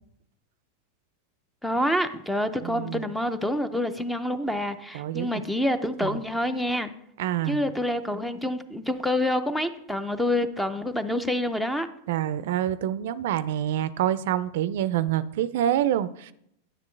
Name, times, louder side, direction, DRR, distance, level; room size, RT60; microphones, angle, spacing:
voice 1, 1.6-6.9 7.5-11.9, left 1 dB, 5° left, 11 dB, 0.5 m, -27 dB
voice 2, 2.6-3.1 4.9-5.4 6.0-6.2 7.2-7.6 12.1-16.3, right 11 dB, 70° right, 16 dB, 0.4 m, -27 dB
9.6 x 7.4 x 3.2 m, 0.75 s
supercardioid pair, 140°, 0 cm